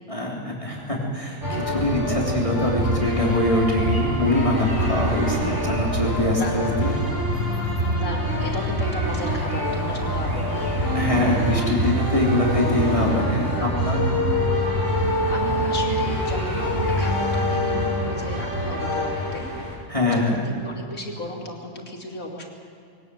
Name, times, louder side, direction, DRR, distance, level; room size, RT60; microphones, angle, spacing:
voice 1, 0.1-7.0 10.9-14.0 19.9-20.4, left 1 dB, 25° left, -3 dB, 3.3 m, -23 dB
sound 1, 1.4-19.7, equal, 60° right, 5.9 m, -25 dB
voice 2, 6.4-6.7 7.9-10.8 15.3-19.5 20.1-22.4, left 1 dB, 85° left, 0 dB, 3.5 m, -34 dB
22.5 x 19.0 x 7.7 m, 2.5 s
omnidirectional pair, 1.4 m